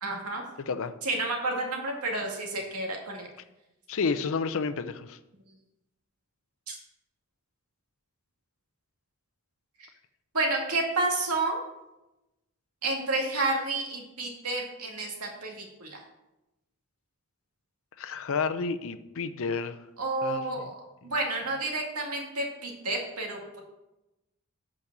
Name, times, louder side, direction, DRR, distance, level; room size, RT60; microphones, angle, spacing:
voice 1, 0.0-0.4 1.0-3.3 6.7-6.8 9.8-9.9 10.3-11.6 12.8-16.0 20.0-20.8 21.0-23.6, right 2 dB, 90° right, 0 dB, 2.1 m, -30 dB
voice 2, 0.6-0.9 3.9-5.2 18.0-19.9 20.2-20.7, left 5 dB, 65° left, 11 dB, 0.6 m, -31 dB
8.4 x 5.2 x 6.0 m, 0.95 s
head